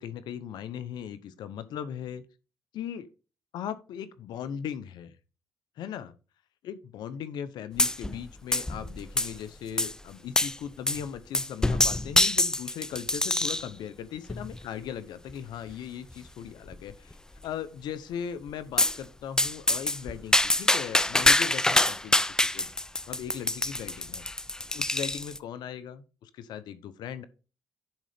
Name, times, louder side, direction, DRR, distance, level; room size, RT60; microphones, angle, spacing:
voice 1, 0.0-2.2 2.7-3.1 3.5-5.1 5.8-6.1 6.6-17.2 17.4-22.7 23.1-24.3 24.7-27.2, left 8 dB, 75° left, 0.8 m, -38 dB
sound 1, 7.8-8.2 8.5-9.4 9.8-9.9 10.4-10.6 10.9-11.0 11.3-13.7 14.3-14.7 15.3-15.4 15.7-15.8 16.1-16.2 16.7-17.1 18.8-19.0 19.4-25.4, left 1 dB, 10° left, 0.4 m, -25 dB
10.5 x 3.8 x 3.5 m
supercardioid pair, 70°, 7 cm